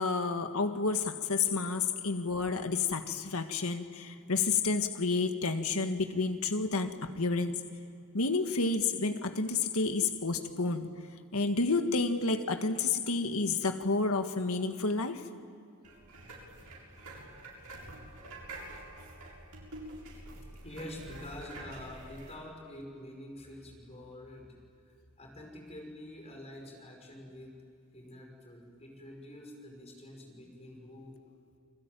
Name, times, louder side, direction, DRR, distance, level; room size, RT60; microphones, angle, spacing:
voice 1, 0.0-7.6 8.1-10.9 11.3-15.2, left 4 dB, 70° left, 7 dB, 1.7 m, -30 dB
sound 1, 15.8-22.3, right 1 dB, 90° right, 7.1 m, -47 dB
voice 2, 20.6-24.6 25.2-27.6 27.9-31.3, left 1 dB, 30° left, 1 dB, 5.7 m, -47 dB
29.0 x 21.0 x 9.2 m, 2.5 s
head